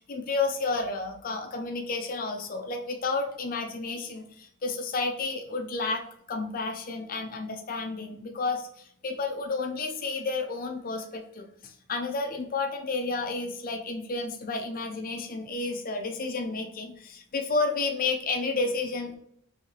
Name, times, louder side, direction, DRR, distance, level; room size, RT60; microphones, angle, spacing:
voice 1, 0.0-19.1, left 3 dB, 40° left, 4 dB, 0.6 m, -31 dB
4.7 x 2.8 x 2.8 m, 0.68 s
head